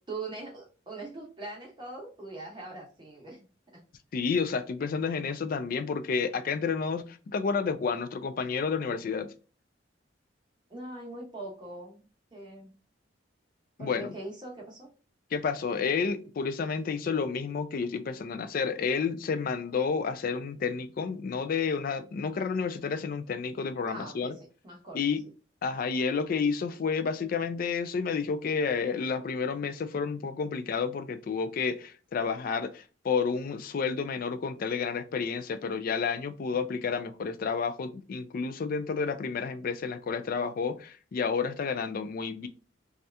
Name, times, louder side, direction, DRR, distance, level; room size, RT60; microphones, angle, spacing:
voice 1, 0.1-3.8 10.7-12.0 12.3-12.7 13.8-14.9 23.9-25.0 36.5-36.6, right 2 dB, 25° right, 0.9 m, -42 dB
voice 2, 4.1-9.3 13.8-14.1 15.3-24.4 24.9-25.2 25.6-42.5, left 5 dB, 50° left, 0.3 m, -30 dB
2.7 x 2.4 x 3.2 m
head